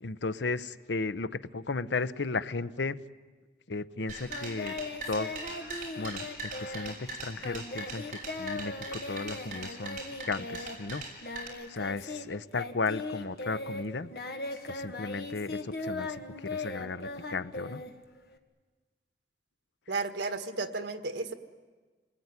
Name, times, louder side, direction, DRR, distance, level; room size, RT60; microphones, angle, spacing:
voice 1, 0.0-3.0 3.7-4.7 5.1-5.3 6.0-10.0 10.3-11.0 11.7-14.1 14.7-17.8, left 3 dB, 90° left, 14 dB, 0.7 m, -35 dB
sound 1, 4.1-11.5, right 2 dB, 45° right, 5.7 m, -41 dB
Singing, 4.3-12.3 12.5-18.4, left 2 dB, 60° left, 1.7 m, -39 dB
voice 2, 19.9-21.3, right 3 dB, 85° right, 9 dB, 1.7 m, -33 dB
27.0 x 20.0 x 9.7 m, 1.4 s
head